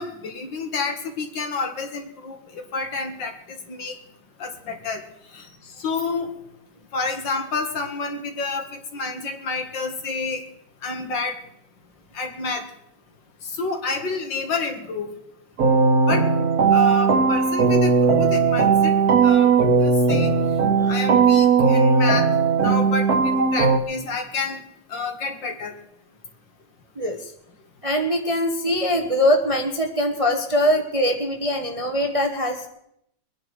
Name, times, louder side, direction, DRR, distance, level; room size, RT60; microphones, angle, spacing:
voice 1, 0.0-4.0 4.4-5.0 5.3-5.5 5.8-6.3 6.9-10.4 10.8-11.4 12.1-12.7 13.4-15.1 16.1-16.3 16.7-18.9 19.2-20.3 20.9-22.3 22.6-24.6 24.9-25.8, left 4 dB, 65° left, 4 dB, 2.4 m, -29 dB
sound 1, 15.6-23.8, right 5 dB, 50° right, 1.8 m, -18 dB
voice 2, 27.0-27.3 27.8-32.7, equal, 25° right, 3 dB, 0.9 m, -22 dB
23.0 x 9.9 x 4.8 m, 0.76 s
omnidirectional pair, 2.1 m